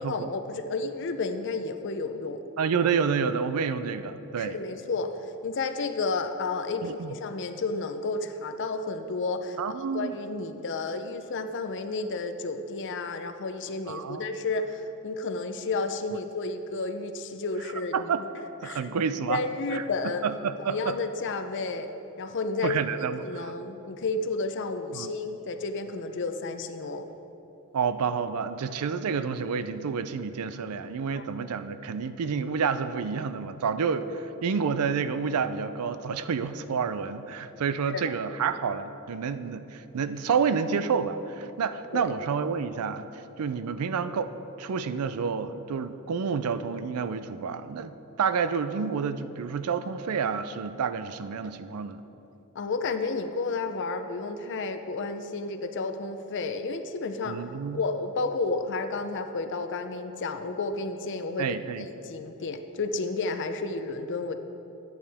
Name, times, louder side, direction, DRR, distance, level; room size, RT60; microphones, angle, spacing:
voice 1, 0.0-2.4 4.4-5.1 5.4-9.6 9.9-18.1 18.6-18.9 19.3-20.2 20.6-21.9 22.2-22.8 23.2-27.1 31.2-31.3 37.9-38.2 41.9-42.1 52.5-57.4 57.7-61.5 61.8-64.3, left 3 dB, 55° left, 8 dB, 0.5 m, -31 dB
voice 2, 2.6-4.6 6.8-7.1 9.6-10.2 13.9-14.3 17.9-18.2 18.6-19.4 19.7-19.8 20.2-21.0 22.6-23.5 24.9-25.1 27.7-44.3 44.6-52.0 57.3-57.8 61.4-61.9, right 6 dB, 85° right, 12 dB, 0.4 m, -29 dB
11.5 x 8.9 x 3.4 m, 2.9 s
head